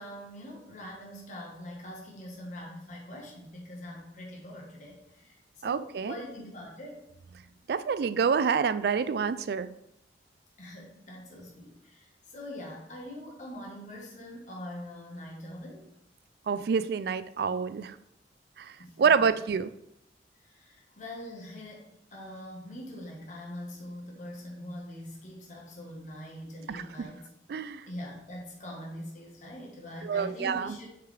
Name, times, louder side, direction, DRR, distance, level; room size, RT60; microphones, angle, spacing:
voice 1, 0.0-7.1 10.6-15.8 18.8-19.3 20.4-27.3 27.9-30.9, left 1 dB, 45° left, -2 dB, 1.3 m, -43 dB
voice 2, 5.6-6.1 7.7-9.7 16.5-17.9 18.6-18.7 19.0-19.7 26.7-26.8 27.5-27.8 30.0-30.8, right 6 dB, 60° right, 13 dB, 0.3 m, -27 dB
6.9 x 4.7 x 3.3 m, 0.82 s
head